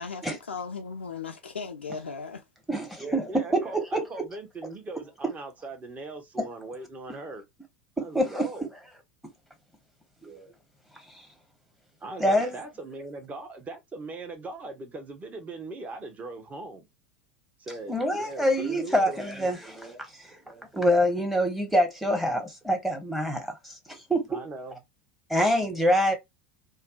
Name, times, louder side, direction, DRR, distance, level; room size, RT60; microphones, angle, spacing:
voice 1, 0.0-2.4, left 5 dB, 85° left, 0.4 m, -37 dB
voice 2, 2.7-4.3 6.4-6.5 8.0-8.5 10.2-10.5 11.1-11.3 12.2-12.5 17.9-24.4 25.3-26.1, equal, 5° right, 0.9 m, -26 dB
voice 3, 3.3-7.5 8.0-8.7 12.0-16.9 17.6-19.2 24.3-24.8, right 2 dB, 25° right, 0.8 m, -40 dB
2.5 x 2.1 x 2.3 m
figure-of-eight pair, 80°, 6 cm